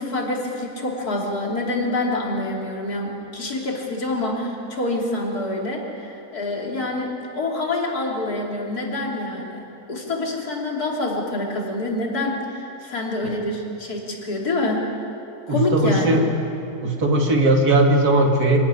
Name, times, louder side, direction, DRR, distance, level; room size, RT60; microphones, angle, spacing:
voice 1, 0.0-14.9 15.5-16.2, left 2 dB, 80° left, -1 dB, 3.4 m, -26 dB
voice 2, 15.5-16.2 16.8-18.6, right 2 dB, 85° right, 1 dB, 2.6 m, -18 dB
25.5 x 12.0 x 9.7 m, 2.7 s
omnidirectional pair, 1.6 m